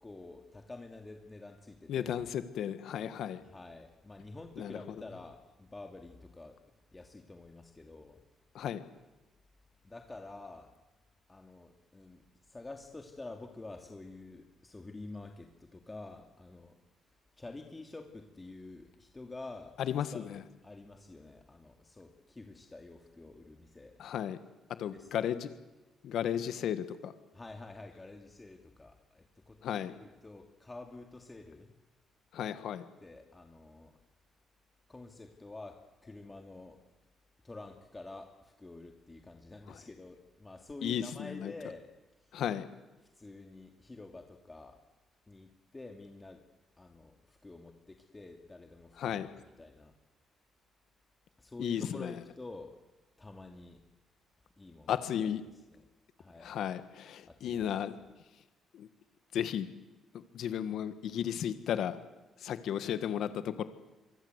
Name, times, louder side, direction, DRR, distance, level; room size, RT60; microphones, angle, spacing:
voice 1, 0.0-2.2 3.5-6.6 6.9-8.2 9.8-10.7 11.3-16.8 17.4-19.7 20.1-20.3 20.6-23.9 24.9-25.1 27.3-31.7 33.0-33.9 34.9-36.8 37.4-41.9 42.2-42.4 43.2-44.8 45.3-46.4 46.8-49.3 49.6-49.9 51.4-52.7 53.2-53.8 54.6-54.9 55.2-55.3 55.7-55.9 56.2-56.5 57.3-57.6, left 2 dB, 20° left, 4 dB, 2.6 m, -48 dB
voice 2, 1.9-3.4 4.6-4.8 8.5-8.8 19.8-20.4 24.0-24.4 24.8-25.5 26.0-27.1 29.6-29.9 32.3-32.8 39.7-39.8 40.8-41.5 42.3-42.7 49.0-49.3 51.6-52.2 54.9-55.4 56.4-58.0 58.7-58.9 59.3-59.7 60.3-62.0 62.4-63.6, left 9 dB, 75° left, 11 dB, 1.6 m, -34 dB
27.5 x 24.0 x 8.2 m, 1.1 s
cardioid pair, 90°, 0 cm